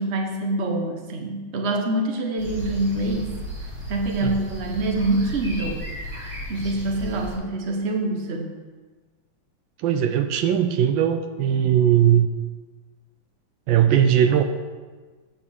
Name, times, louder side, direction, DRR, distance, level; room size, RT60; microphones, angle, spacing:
voice 1, 0.0-3.4 3.9-5.8 6.5-8.5, right 2 dB, 40° right, 2 dB, 1.1 m, -25 dB
sound 1, 2.4-7.4, equal, 60° right, 2.7 m, -34 dB
voice 2, 9.8-12.3 13.7-14.4, right 9 dB, 80° right, 8 dB, 1.3 m, -19 dB
8.7 x 5.2 x 6.2 m, 1.4 s
omnidirectional pair, 2.1 m